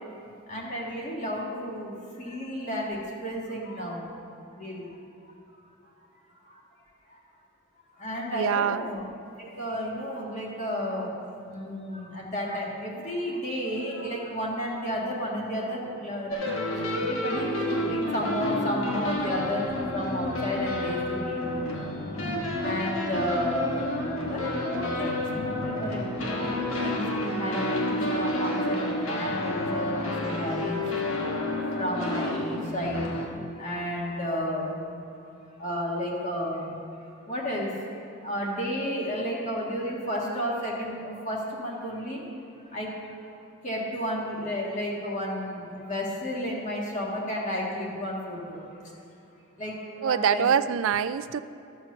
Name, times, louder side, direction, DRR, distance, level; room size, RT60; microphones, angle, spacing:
voice 1, 0.5-1.9 2.2-4.0 4.6-4.8 8.0-9.0 9.4-11.1 11.5-16.3 16.9-21.6 22.6-30.8 31.8-33.1 33.6-34.8 35.6-36.7 37.3-37.7 38.2-42.2 42.7-42.9 43.6-48.6 49.6-50.4, equal, 35° left, -3 dB, 1.7 m, -32 dB
voice 2, 8.3-8.8 50.0-51.4, right 8 dB, 70° right, 14 dB, 0.3 m, -24 dB
sound 1, 16.3-33.3, left 1 dB, 70° left, 1.3 m, -30 dB
13.0 x 4.5 x 6.8 m, 2.6 s
head